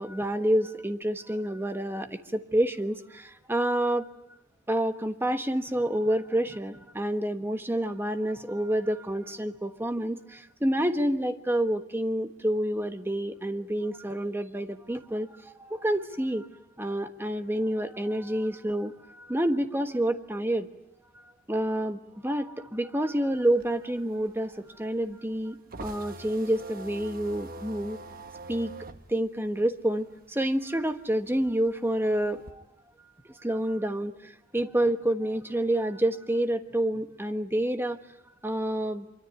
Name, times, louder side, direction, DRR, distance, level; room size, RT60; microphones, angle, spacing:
voice 1, 0.0-4.1 4.7-16.5 16.8-20.7 21.5-28.0 28.5-28.7 29.1-32.6 33.4-38.0 38.4-39.0, right 1 dB, 10° right, 8 dB, 1.3 m, -28 dB
sound 1, 23.3-30.4 30.8-32.5, right 2 dB, 45° right, 1.2 m, -44 dB
25.0 x 24.0 x 9.5 m, 0.83 s
head